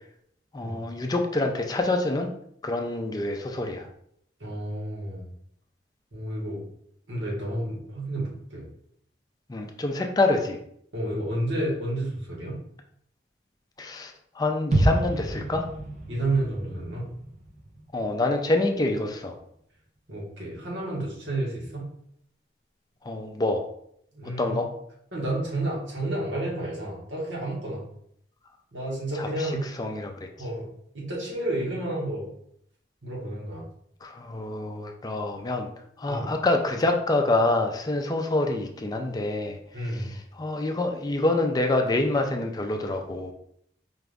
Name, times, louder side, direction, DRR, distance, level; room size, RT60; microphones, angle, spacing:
voice 1, 0.5-2.3 2.6-3.9 9.5-10.6 13.8-15.7 17.9-19.4 23.0-23.6 24.4-24.7 29.2-29.5 29.8-30.1 34.0-35.7 36.0-39.6 39.9-40.1 40.3-43.3, left 2 dB, 20° left, 3 dB, 0.4 m, -26 dB
voice 2, 4.4-5.3 6.1-6.6 7.1-8.6 10.9-12.6 16.1-17.1 20.1-21.9 24.1-24.7 25.1-27.8 28.7-29.7 30.4-30.7 30.9-32.3 33.0-33.7 36.1-36.3 39.7-40.1, right 1 dB, 90° right, -4 dB, 1.6 m, -30 dB
sound 1, 14.7-18.7 19.0-19.1, right 1 dB, 40° right, 0.7 m, -29 dB
4.7 x 2.5 x 3.4 m, 0.69 s
head